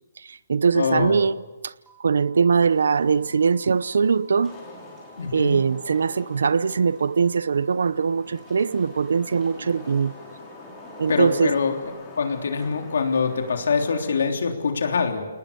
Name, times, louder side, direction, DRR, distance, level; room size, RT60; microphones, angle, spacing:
voice 1, 0.2-1.7 2.0-4.6 5.3-10.1 11.0-11.5, right 5 dB, 85° right, 0.7 m, -22 dB
voice 2, 0.7-1.2 5.2-5.6 11.1-11.8 12.2-15.3, left 5 dB, 75° left, 3.4 m, -24 dB
sound 1, 1.9-11.9, right 4 dB, 10° right, 3.0 m, -52 dB
Wind / Rain, 2.7-14.2, left 3 dB, 20° left, 4.9 m, -45 dB
29.5 x 19.5 x 6.8 m
hypercardioid pair, 160°, 0 cm